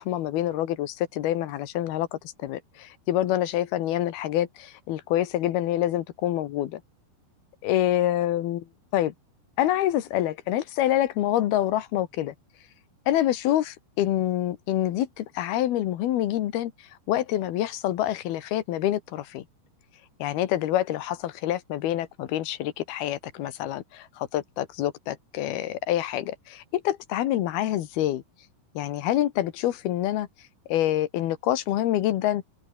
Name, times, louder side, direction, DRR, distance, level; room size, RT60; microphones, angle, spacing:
voice 1, 0.0-6.8 7.6-8.6 8.9-9.1 9.6-12.3 13.1-16.7 17.1-19.4 20.2-28.2 28.8-30.3 30.7-32.4, left 13 dB, 70° left, 3.1 m, -26 dB
open air
omnidirectional pair, 4.8 m